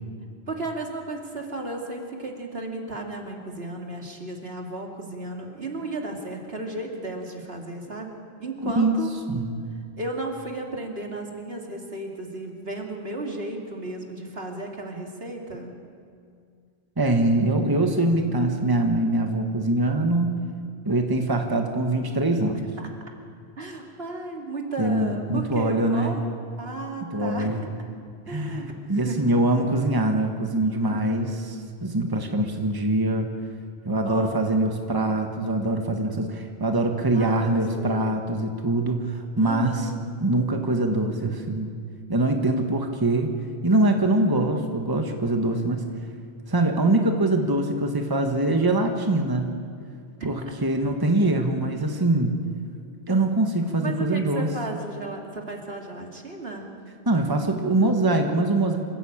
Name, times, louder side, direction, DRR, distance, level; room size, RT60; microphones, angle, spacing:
voice 1, 0.5-8.1 8.4-9.1 10.0-15.7 22.5-22.9 23.6-26.3 26.6-27.5 28.3-29.3 30.8-31.3 34.0-34.4 37.1-38.0 39.3-39.9 50.2-50.3 53.8-56.8, right 2 dB, 70° right, 1 dB, 2.9 m, -34 dB
voice 2, 8.6-9.0 9.3-9.6 17.0-20.4 20.8-22.5 24.8-26.2 27.0-27.6 28.3-33.3 33.8-39.9 40.2-41.7 42.1-43.3 43.6-45.9 46.5-49.5 50.2-50.4 50.6-52.3 53.1-54.5 57.0-58.8, right 2 dB, 20° right, 4 dB, 1.5 m, -23 dB
26.5 x 15.0 x 8.8 m, 2.3 s
omnidirectional pair, 1.1 m